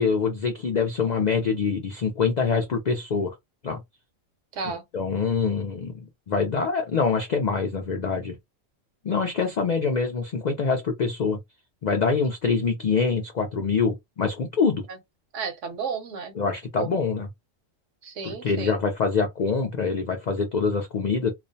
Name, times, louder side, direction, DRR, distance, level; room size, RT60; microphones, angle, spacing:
voice 1, 0.0-3.4 3.6-3.8 4.6-8.4 9.0-11.4 11.8-14.8 16.4-17.3 18.2-21.3, left 5 dB, 70° left, 0.4 m, -25 dB
voice 2, 4.5-4.8 14.9-15.0 15.3-16.3 16.8-16.9 18.0-18.7, right 5 dB, 70° right, 1.0 m, -32 dB
2.5 x 2.0 x 2.6 m
omnidirectional pair, 1.3 m